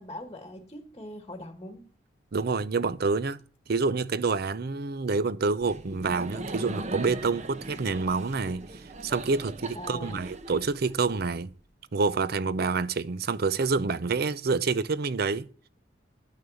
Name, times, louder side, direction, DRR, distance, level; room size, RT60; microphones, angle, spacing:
voice 1, 0.0-1.8 9.7-10.3, left 1 dB, 20° left, 1.4 m, -41 dB
voice 2, 2.3-3.4 3.7-11.5 11.9-15.5, right 4 dB, 55° right, 0.6 m, -27 dB
Laughter, 5.6-11.4, right 2 dB, 40° right, 0.9 m, -40 dB
11.0 x 6.6 x 7.0 m
head